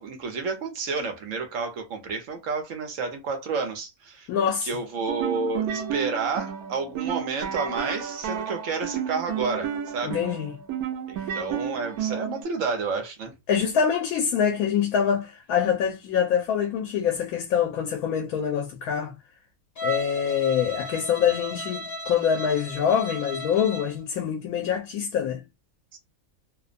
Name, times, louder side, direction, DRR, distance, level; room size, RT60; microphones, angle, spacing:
voice 1, 0.0-4.3 4.6-10.2 11.1-13.3 25.9-26.0, right 4 dB, 65° right, 1.1 m, -30 dB
voice 2, 4.3-4.7 10.0-10.6 11.2-11.3 13.5-19.1 19.8-25.4, left 8 dB, 80° left, 1.1 m, -25 dB
sound 1, 5.0-12.4, right 8 dB, 90° right, 1.1 m, -32 dB
Bowed string instrument, 19.8-24.0, left 1 dB, 45° left, 1.2 m, -35 dB
2.8 x 2.1 x 2.4 m
omnidirectional pair, 1.5 m